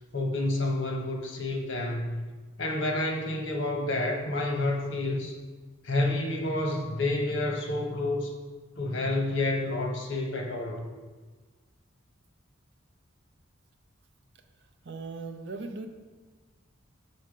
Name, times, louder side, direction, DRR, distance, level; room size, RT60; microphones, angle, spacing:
voice 1, 0.1-2.2 2.6-5.4 5.8-8.3 8.8-10.9, left 2 dB, 60° left, 1 dB, 1.1 m, -29 dB
voice 2, 14.8-15.9, right 3 dB, 55° right, 6 dB, 0.6 m, -38 dB
6.5 x 4.3 x 5.1 m, 1.3 s
head